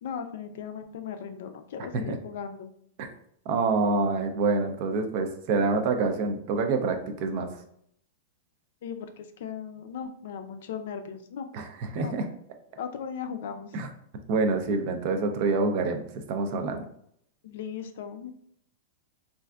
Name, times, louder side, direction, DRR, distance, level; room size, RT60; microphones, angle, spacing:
voice 1, 0.0-2.7 8.8-11.5 11.9-12.2 12.8-13.7 17.4-18.3, left 7 dB, 65° left, 8 dB, 0.4 m, -37 dB
voice 2, 3.5-7.5 11.5-12.3 13.7-13.9 14.3-16.9, right 3 dB, 45° right, 6 dB, 0.4 m, -27 dB
3.3 x 2.5 x 2.3 m, 0.69 s
supercardioid pair, 155°, 0 cm